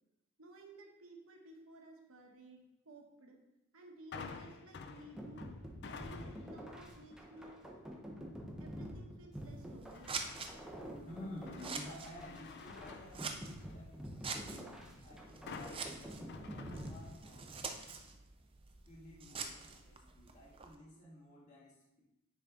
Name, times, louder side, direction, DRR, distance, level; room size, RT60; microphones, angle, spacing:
voice 1, 0.4-3.4 3.7-5.5 5.9-7.5 8.6-10.3, right 2 dB, 65° right, 1 dB, 1.2 m, -56 dB
sound 1, 4.1-6.6 7.1-7.5 9.9-10.6 11.1-13.9 15.5-17.4 17.7-17.9, left 4 dB, 50° left, 0.4 m, -50 dB
sound 2, 5.2-17.7, equal, 5° right, 0.8 m, -48 dB
Scissors, 9.3-20.8, right 5 dB, 25° right, 0.5 m, -47 dB
voice 2, 11.0-18.1 18.9-22.0, left 1 dB, 35° left, -7 dB, 2.0 m, -53 dB
9.6 x 4.2 x 3.8 m, 0.92 s
head